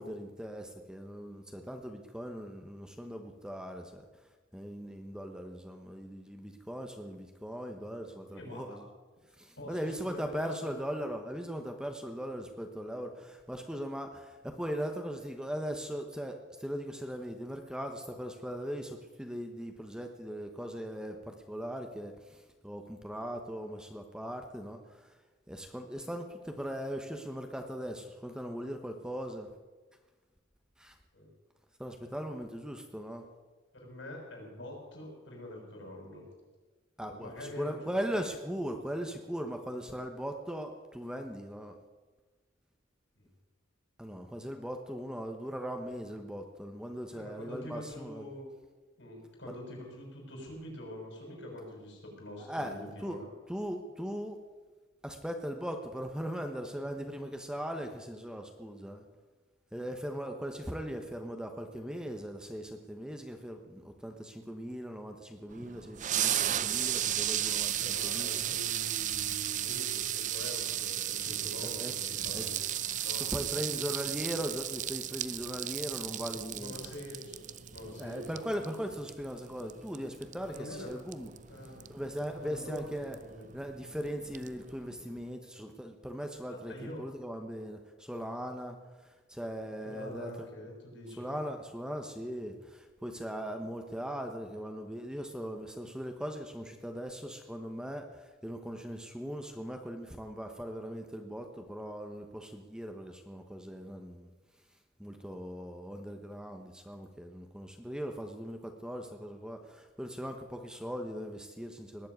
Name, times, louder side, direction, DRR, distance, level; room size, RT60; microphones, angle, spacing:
voice 1, 0.0-4.1 4.5-8.8 9.3-25.2 25.5-29.5 30.8-31.0 31.8-33.3 37.0-41.8 44.0-48.2 52.4-53.2 53.5-54.4 55.0-59.0 59.7-68.4 71.6-71.9 72.3-72.5 73.1-76.7 78.0-81.3 81.9-83.2 83.5-90.3 91.2-104.3 105.0-112.1, equal, 5° right, 4 dB, 1.1 m, -39 dB
voice 2, 8.3-8.8 9.6-10.7 31.1-31.3 33.7-36.3 37.0-38.0 39.8-40.0 43.2-43.3 47.1-48.5 49.0-53.3 67.8-72.5 72.9-73.6 76.1-78.5 80.4-80.9 81.5-81.9 82.3-83.5 86.5-87.0 89.8-91.3 95.3-95.6 105.2-105.3, left 1 dB, 70° left, 0 dB, 6.7 m, -45 dB
sound 1, 65.5-85.3, right 11 dB, 40° right, 0.5 m, -35 dB
19.5 x 7.6 x 9.4 m, 1.3 s
head